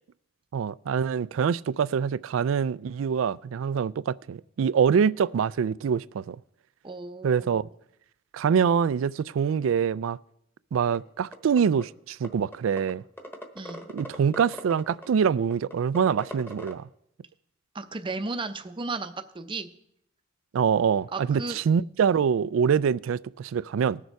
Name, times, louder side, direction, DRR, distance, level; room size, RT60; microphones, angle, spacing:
voice 1, 0.5-6.4 7.2-7.6 8.3-10.2 10.7-13.0 13.9-16.9 20.5-24.0, right 7 dB, 75° right, 0.3 m, -25 dB
voice 2, 6.8-7.7 13.5-13.9 17.7-19.7 21.1-21.6, right 3 dB, 25° right, 0.6 m, -34 dB
sound 1, 10.9-11.0 11.3-11.8 12.2-12.3 12.5-12.9 13.2-16.7, equal, 10° left, 1.1 m, -39 dB
19.5 x 6.6 x 4.6 m
head